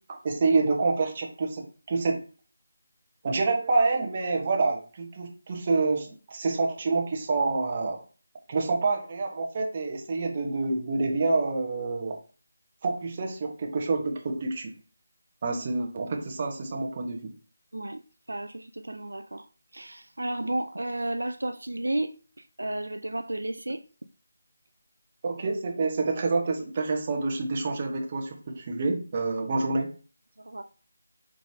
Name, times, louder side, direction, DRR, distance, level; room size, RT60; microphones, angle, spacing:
voice 1, 0.0-2.2 3.2-8.0 8.5-12.2 12.8-14.7 15.4-17.3 25.2-29.9, right 3 dB, 30° right, 0.9 m, -27 dB
voice 2, 18.3-19.5 19.7-22.1 22.6-23.8 30.4-30.6, right 1 dB, 90° right, 0.4 m, -32 dB
4.8 x 3.8 x 2.8 m
figure-of-eight pair, 165°, 0 cm